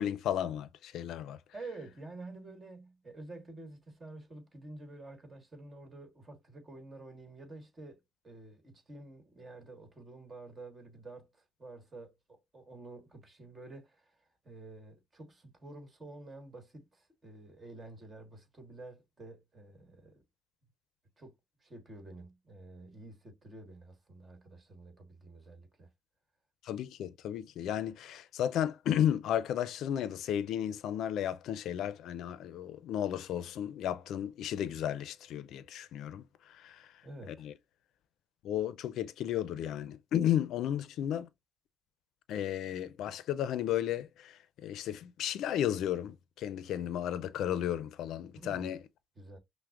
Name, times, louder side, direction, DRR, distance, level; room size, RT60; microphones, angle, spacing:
voice 1, 0.0-1.4 26.6-36.9 37.3-37.5 38.4-41.3 42.3-48.8, left 10 dB, 80° left, 0.4 m, -34 dB
voice 2, 1.5-20.2 21.2-21.3 21.6-25.9 37.0-37.5 48.4-48.8 49.2-49.4, right 2 dB, 30° right, 1.5 m, -49 dB
5.7 x 2.1 x 2.4 m
cardioid pair, 90°, 0 cm